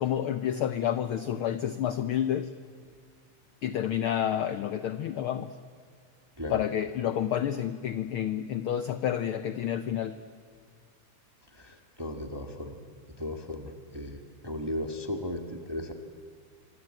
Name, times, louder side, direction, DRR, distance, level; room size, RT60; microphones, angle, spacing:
voice 1, 0.0-2.5 3.6-5.6 6.5-10.2, left 10 dB, 75° left, 12 dB, 1.2 m, -29 dB
voice 2, 11.6-12.8 13.2-14.2 14.4-15.9, left 1 dB, 10° right, 6 dB, 1.1 m, -36 dB
26.0 x 25.5 x 8.9 m, 2.2 s
omnidirectional pair, 3.3 m